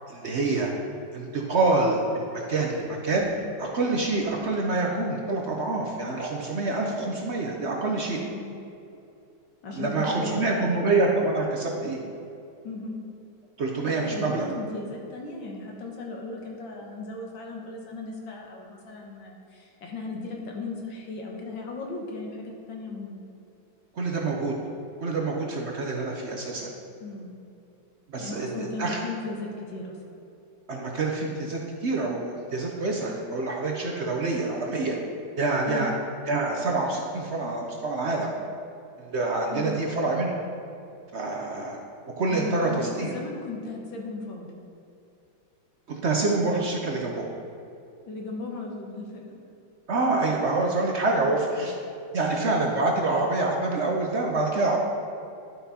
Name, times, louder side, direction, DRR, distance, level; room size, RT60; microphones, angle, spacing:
voice 1, 0.1-0.7 1.1-3.3 3.6-8.2 9.7-12.0 13.6-14.5 23.9-24.6 25.0-26.7 28.1-29.0 30.7-35.0 35.4-35.9 36.3-38.3 39.0-40.4 41.1-41.8 42.2-43.1 45.9-47.3 49.9-51.8 52.1-54.8, right 3 dB, 60° right, 0 dB, 0.7 m, -26 dB
voice 2, 8.2-8.5 9.6-10.8 12.6-13.0 13.8-23.2 27.0-27.3 28.2-30.0 35.7-35.9 39.5-39.8 42.3-44.7 48.1-49.3, left 3 dB, 75° left, 0 dB, 2.0 m, -36 dB
11.0 x 5.9 x 4.2 m, 2.6 s
omnidirectional pair, 2.1 m